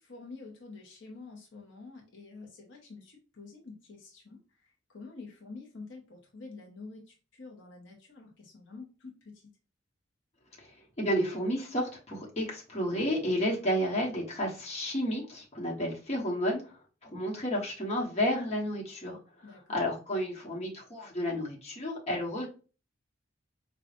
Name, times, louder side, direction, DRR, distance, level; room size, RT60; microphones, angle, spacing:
voice 1, 0.0-9.5 19.4-19.8, left 3 dB, 70° left, 0 dB, 0.8 m, -48 dB
voice 2, 10.6-19.2 19.5-22.5, equal, 35° left, -2 dB, 1.1 m, -31 dB
4.8 x 2.3 x 2.4 m, 0.34 s
head